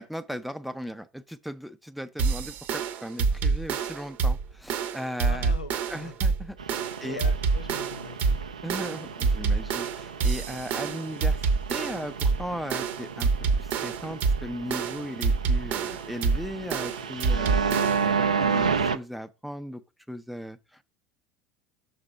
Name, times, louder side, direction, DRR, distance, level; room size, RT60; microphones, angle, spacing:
voice 1, 0.0-5.5 5.9-7.2 8.6-11.4 11.7-13.3 13.6-19.8 20.1-20.8, equal, ahead, 0.6 m, -37 dB
sound 1, 2.2-18.2, right 4 dB, 50° right, 0.9 m, -27 dB
voice 2, 5.2-6.1 7.0-8.5, left 4 dB, 90° left, 0.9 m, -41 dB
sound 2, 6.6-19.0, right 5 dB, 85° right, 0.5 m, -32 dB
6.6 x 4.2 x 5.1 m
figure-of-eight pair, 70°, 4 cm